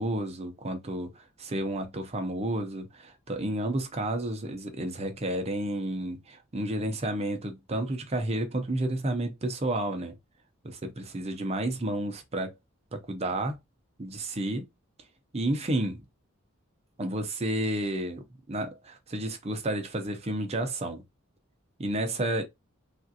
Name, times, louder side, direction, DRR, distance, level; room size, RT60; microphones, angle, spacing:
voice 1, 0.0-10.1 10.6-12.5 12.9-13.6 14.0-14.6 15.3-16.0 17.0-21.0 21.8-22.4, right 1 dB, 30° right, 0.6 m, -31 dB
3.5 x 2.4 x 2.6 m
head